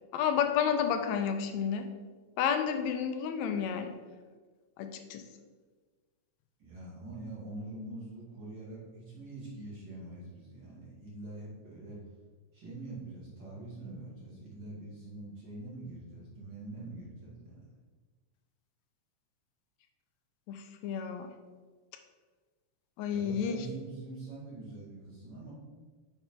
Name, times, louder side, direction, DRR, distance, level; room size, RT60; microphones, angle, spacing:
voice 1, 0.1-1.9 2.4-3.9 4.8-5.2 20.5-21.3 23.0-23.6, left 7 dB, 80° left, 7 dB, 1.9 m, -31 dB
voice 2, 6.6-12.0 12.5-17.6 23.1-25.5, right 2 dB, 40° right, -7 dB, 2.5 m, -44 dB
6.8 x 5.9 x 4.4 m, 1.4 s
omnidirectional pair, 3.3 m